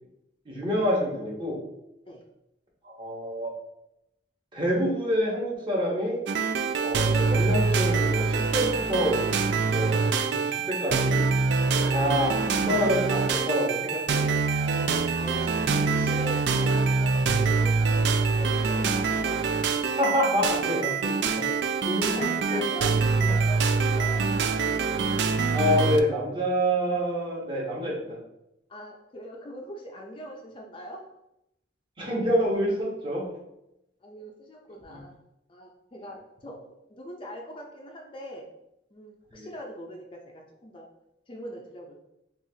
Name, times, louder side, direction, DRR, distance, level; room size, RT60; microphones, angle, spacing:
voice 1, 0.5-1.6 2.8-3.5 4.5-6.2 6.8-9.2 9.7-11.3 11.8-14.3 20.0-21.4 21.8-22.7 23.2-23.3 25.5-28.2 32.0-33.3 34.9-35.0 39.3-39.5, equal, 30° right, -3 dB, 1.0 m, -27 dB
sound 1, 6.3-26.0, right 4 dB, 65° right, 0.3 m, -25 dB
voice 2, 14.9-19.4 21.9-24.2 28.7-31.1 34.0-35.1 35.5-38.5 38.9-40.9 41.3-42.0, equal, 30° left, 1 dB, 0.4 m, -42 dB
5.7 x 2.4 x 2.7 m, 0.85 s
head